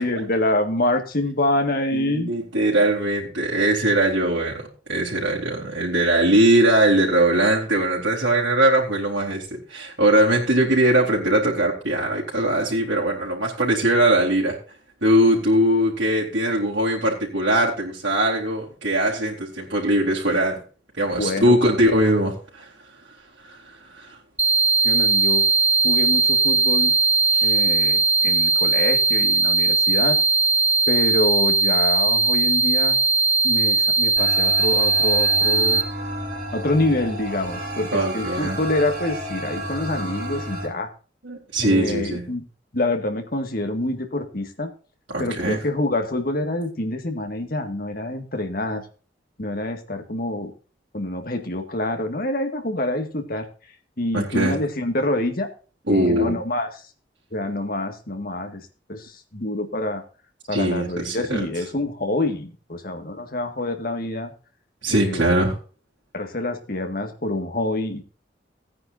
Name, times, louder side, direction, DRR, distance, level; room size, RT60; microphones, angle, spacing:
voice 1, 0.0-2.3 21.2-21.6 24.8-25.5 25.8-26.9 27.4-30.2 30.9-33.0 33.4-35.8 36.5-40.9 41.6-42.4 42.7-44.7 45.2-48.9 49.4-50.5 50.9-53.5 54.0-55.5 55.9-56.7 57.3-60.0 60.5-64.3 64.9-65.3 66.1-68.0, left 1 dB, 50° left, 6 dB, 1.9 m, -26 dB
voice 2, 1.9-14.6 15.0-20.6 21.0-22.7 23.4-23.6 23.9-24.1 37.9-38.6 41.2-42.2 45.1-45.6 54.1-54.5 55.9-56.4 60.5-61.5 64.8-65.6, right 1 dB, 85° right, -4 dB, 3.7 m, -21 dB
sound 1, 24.4-35.8, right 3 dB, 10° right, 0.6 m, -19 dB
sound 2, 34.2-40.7, right 1 dB, 45° right, 5.3 m, -32 dB
16.5 x 9.6 x 2.7 m, 0.37 s
head